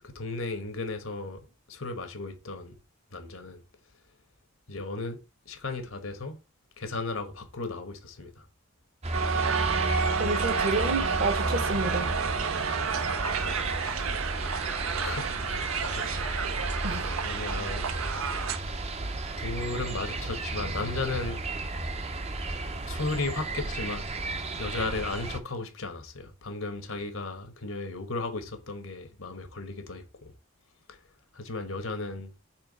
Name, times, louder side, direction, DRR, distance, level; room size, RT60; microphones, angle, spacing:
voice 1, 0.0-1.4 1.7-2.7 3.1-3.6 4.7-5.2 5.5-6.4 6.8-8.3 13.6-13.9 15.0-17.9 18.3-18.5 19.4-21.4 22.9-24.1 24.6-30.3 30.9-31.0 31.3-32.3, left 3 dB, 75° left, 1.2 m, -35 dB
sound 1, 9.0-25.4, right 2 dB, 30° right, 0.7 m, -33 dB
Crowd, 9.1-18.6, right 6 dB, 80° right, 0.7 m, -30 dB
voice 2, 10.2-12.1 16.8-17.0, right 2 dB, 45° right, 1.1 m, -29 dB
4.5 x 4.2 x 5.3 m
head